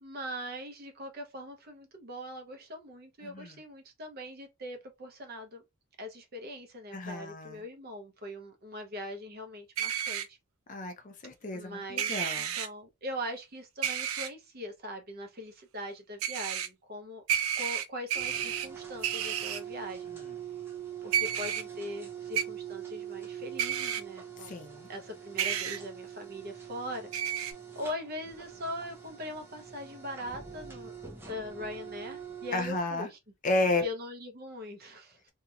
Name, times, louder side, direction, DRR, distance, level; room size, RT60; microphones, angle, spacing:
voice 1, 0.0-5.6 6.0-10.4 11.5-17.2 17.6-20.1 21.0-27.1 27.7-30.9 31.2-33.2 33.8-35.2, left 1 dB, 45° right, 0.7 m, -41 dB
voice 2, 3.2-3.6 6.9-7.6 10.7-12.5 20.1-20.3 24.4-24.9 32.5-33.1 33.4-33.8, left 2 dB, 35° left, 0.5 m, -32 dB
sound 1, 9.8-10.3 12.0-12.7 13.8-14.3 16.2-16.7 17.3-18.7 19.0-19.6 21.1-21.6 22.3-22.4 23.6-24.0 25.4-25.8 27.1-27.5, right 9 dB, 75° right, 0.4 m, -31 dB
sound 2, 18.1-32.8, right 8 dB, 10° right, 0.5 m, -44 dB
2.9 x 2.7 x 2.3 m
head